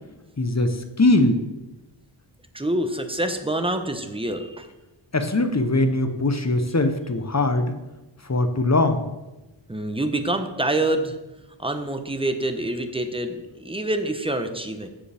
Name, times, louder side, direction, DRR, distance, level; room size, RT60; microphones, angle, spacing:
voice 1, 0.4-1.4 5.1-7.8 8.2-9.0, left 2 dB, 35° left, 7 dB, 0.9 m, -21 dB
voice 2, 2.5-4.7 9.7-11.2 11.6-14.9, right 1 dB, 10° right, 7 dB, 0.9 m, -26 dB
14.0 x 5.0 x 3.5 m, 1.0 s
wide cardioid pair, 50°, 49 cm